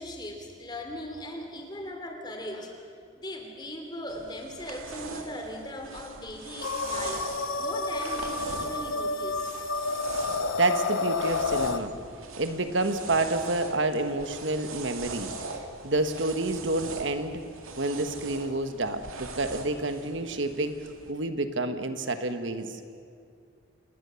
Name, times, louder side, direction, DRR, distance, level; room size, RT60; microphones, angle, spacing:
voice 1, 0.0-2.7 3.2-7.3 7.6-9.7, left 1 dB, 20° left, 3 dB, 3.1 m, -39 dB
sound 1, 4.1-21.1, right 3 dB, 85° right, 2.4 m, -41 dB
sound 2, 6.6-11.8, left 3 dB, 75° left, 0.9 m, -30 dB
voice 2, 10.5-11.9 12.4-15.3 15.8-17.4 17.8-22.8, right 2 dB, 60° right, 8 dB, 1.4 m, -29 dB
27.0 x 20.5 x 7.1 m, 2.3 s
head